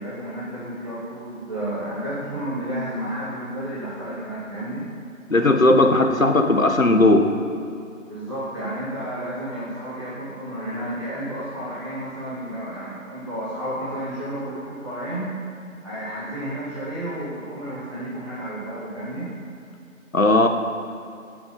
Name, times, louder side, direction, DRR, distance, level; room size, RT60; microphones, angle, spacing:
voice 1, 0.0-4.8 8.1-15.3 15.8-19.3, right 1 dB, 20° right, -11 dB, 1.8 m, -31 dB
voice 2, 5.3-7.2 20.1-20.5, left 2 dB, 70° left, 4 dB, 1.7 m, -16 dB
16.5 x 6.9 x 5.5 m, 2.5 s
figure-of-eight pair, 170°, 41 cm